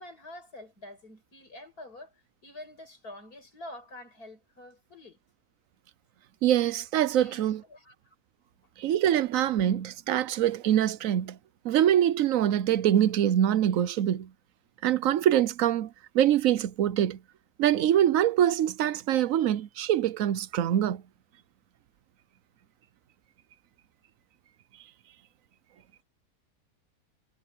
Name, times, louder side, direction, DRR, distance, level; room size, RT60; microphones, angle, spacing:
voice 1, 0.0-5.2 7.2-8.0, left 1 dB, 80° left, 7.3 m, -47 dB
voice 2, 6.4-7.6 8.8-11.4 11.6-14.3 14.8-15.9 16.1-17.2 17.6-21.0, right 11 dB, 70° right, 1.0 m, -24 dB
omnidirectional pair, 1.6 m